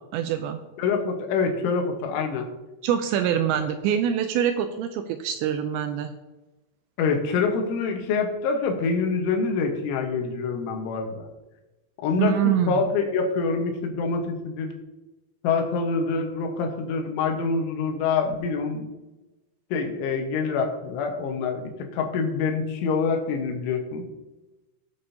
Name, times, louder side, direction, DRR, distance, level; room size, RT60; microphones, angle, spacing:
voice 1, 0.1-0.6 2.8-6.1 12.2-12.7, right 9 dB, 85° right, 8 dB, 2.5 m, -24 dB
voice 2, 0.8-2.5 3.5-3.6 7.0-11.2 12.0-14.7 15.4-18.9 19.7-24.1, left 4 dB, 80° left, 4 dB, 3.6 m, -26 dB
17.5 x 7.7 x 2.8 m, 1.1 s
omnidirectional pair, 5.5 m